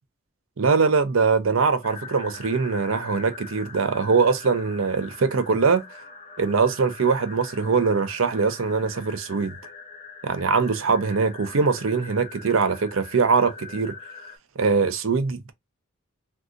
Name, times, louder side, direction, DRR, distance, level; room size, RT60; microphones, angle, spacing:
voice 1, 0.6-5.8 6.4-9.6 10.2-13.9 14.6-15.5, right 5 dB, 80° right, 0.6 m, -22 dB
sound 1, 1.8-14.4, left 5 dB, 35° left, 0.7 m, -42 dB
2.6 x 2.4 x 3.7 m
head